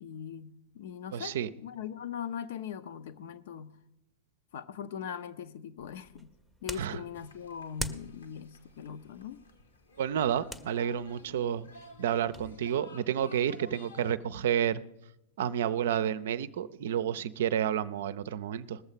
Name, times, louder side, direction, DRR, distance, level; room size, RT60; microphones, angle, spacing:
voice 1, 0.0-3.8 4.5-6.3 6.6-9.4, left 8 dB, 55° left, 0.7 m, -40 dB
voice 2, 1.1-1.5 6.8-7.0 10.0-11.7 12.0-14.8 15.4-18.8, right 9 dB, 60° right, 0.5 m, -30 dB
sound 1, 5.8-12.5, equal, 5° left, 0.8 m, -46 dB
sound 2, 7.1-14.2, left 1 dB, 80° left, 1.5 m, -54 dB
19.5 x 7.1 x 5.6 m
figure-of-eight pair, 95°, 0 cm